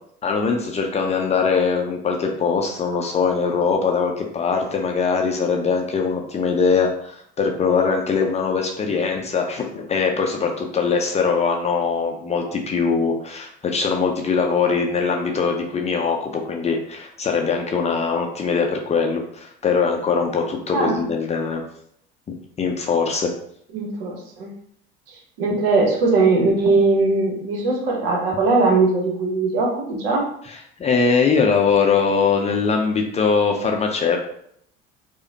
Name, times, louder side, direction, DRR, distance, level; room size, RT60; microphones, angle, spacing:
voice 1, 0.2-21.6 22.6-23.3 30.5-34.2, left 5 dB, 20° left, 2 dB, 0.5 m, -21 dB
voice 2, 20.7-21.0 23.7-24.5 25.4-30.3, right 3 dB, 65° right, 0 dB, 1.0 m, -20 dB
4.7 x 2.1 x 2.7 m, 0.68 s
figure-of-eight pair, 60°, 30 cm